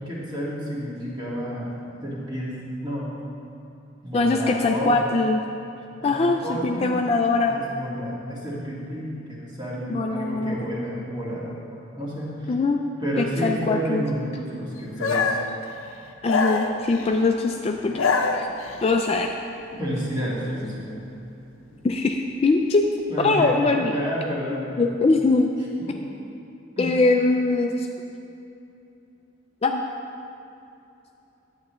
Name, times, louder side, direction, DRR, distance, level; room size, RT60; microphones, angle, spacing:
voice 1, 0.0-2.6 2.8-3.1 4.0-5.0 6.0-7.0 7.5-12.5 13.0-15.4 19.8-21.0 21.7-21.8 23.1-24.9 25.9-26.0 26.8-27.0, equal, 20° right, -7 dB, 1.9 m, -30 dB
voice 2, 4.1-5.4 6.0-7.5 9.9-10.6 12.5-12.8 13.2-14.0 16.2-18.5 18.8-19.3 21.8-22.8 23.2-24.0 24.8-25.5 26.8-27.9 29.6-29.8, left 3 dB, 30° left, 3 dB, 0.3 m, -22 dB
sound 1, 15.0-15.5 16.3-17.2 17.8-18.9, left 4 dB, 80° left, 0.6 m, -24 dB
11.0 x 8.3 x 3.1 m, 2.8 s
head